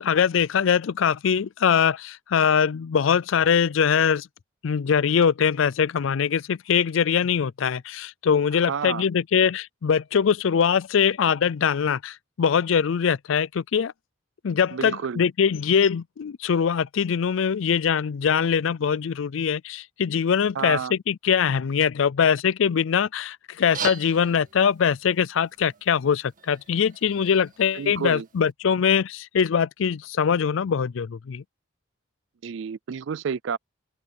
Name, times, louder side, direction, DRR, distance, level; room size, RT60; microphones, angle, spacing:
voice 1, 0.0-4.3 4.6-13.9 14.4-31.4, left 7 dB, 70° left, 0.4 m, -22 dB
voice 2, 8.7-9.0 14.7-15.2 20.6-20.9 27.7-28.3 32.4-33.6, right 6 dB, 65° right, 0.4 m, -30 dB
sound 1, 23.5-28.5, right 6 dB, 40° right, 2.2 m, -40 dB
open air
head